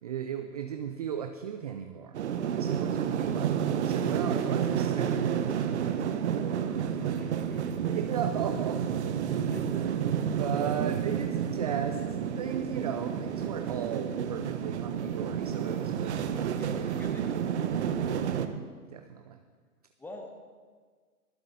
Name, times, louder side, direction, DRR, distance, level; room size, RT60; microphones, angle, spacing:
voice 1, 0.0-2.2 2.4-7.3 7.9-9.0 9.4-9.9 10.3-16.9 18.3-18.6 18.9-19.4, right 8 dB, 30° right, 7 dB, 0.4 m, -37 dB
sound 1, 2.1-18.5, right 8 dB, 50° right, 1.0 m, -30 dB
voice 2, 7.2-7.8 9.5-9.7 16.5-17.5 20.0-20.3, left 1 dB, 5° left, 3 dB, 1.1 m, -45 dB
22.5 x 8.0 x 4.1 m, 1.6 s
figure-of-eight pair, 120°, 44 cm